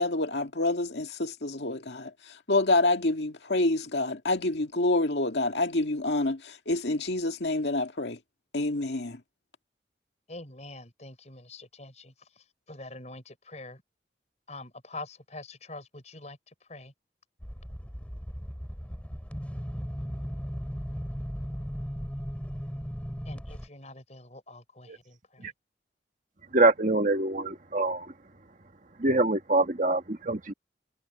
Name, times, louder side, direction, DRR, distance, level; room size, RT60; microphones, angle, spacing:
voice 1, 0.0-8.2 8.5-9.2, left 2 dB, 80° left, 2.1 m, -27 dB
voice 2, 10.3-12.1 12.7-13.8 14.5-16.4 16.7-16.9 23.3-25.5, left 2 dB, 40° left, 5.6 m, -45 dB
sound 1, 17.4-23.7, equal, 10° left, 3.0 m, -36 dB
voice 3, 26.5-28.1 29.0-30.5, right 2 dB, 45° right, 1.5 m, -25 dB
head